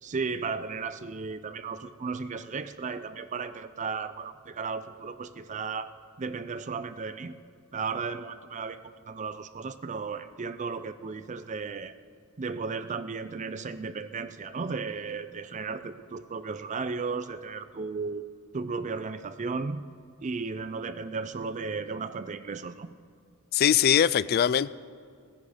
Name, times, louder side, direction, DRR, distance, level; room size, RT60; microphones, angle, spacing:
voice 1, 0.0-5.9 6.2-7.3 7.7-11.9 12.4-18.2 18.5-19.8 20.2-22.9, right 4 dB, 35° right, 12 dB, 0.5 m, -35 dB
voice 2, 23.5-24.7, left 9 dB, 45° left, 18 dB, 0.3 m, -22 dB
18.5 x 10.5 x 5.0 m, 2.2 s
head